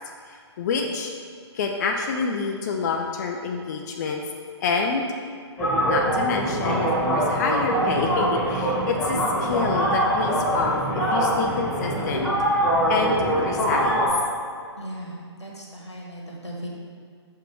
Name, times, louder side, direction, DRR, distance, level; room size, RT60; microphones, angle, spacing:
voice 1, 0.3-1.1 1.5-4.2 4.6-5.1 5.9-12.3 12.9-14.0, left 4 dB, 35° left, 2 dB, 0.4 m, -27 dB
sound 1, 5.6-14.1, right 1 dB, 5° left, 1.4 m, -23 dB
voice 2, 14.8-16.7, right 1 dB, 85° left, -2 dB, 1.4 m, -37 dB
6.6 x 5.1 x 3.1 m, 2.2 s
figure-of-eight pair, 125°, 14 cm